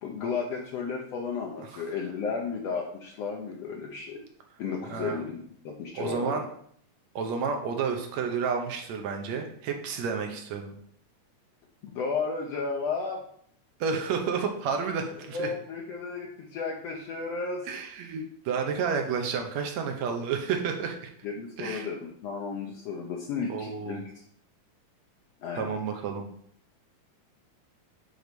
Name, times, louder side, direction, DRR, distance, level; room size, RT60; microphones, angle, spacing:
voice 1, 0.0-4.2 4.6-5.4 5.6-6.4 11.8-13.2 15.3-17.7 21.2-24.0 25.4-25.7, left 5 dB, 70° left, -1 dB, 1.7 m, -33 dB
voice 2, 4.9-5.2 5.9-6.5 7.2-10.8 13.8-15.5 17.7-21.0 21.6-21.9 23.5-24.0 25.6-26.3, right 6 dB, 70° right, 4 dB, 2.1 m, -30 dB
8.0 x 3.9 x 5.2 m, 0.64 s
omnidirectional pair, 3.4 m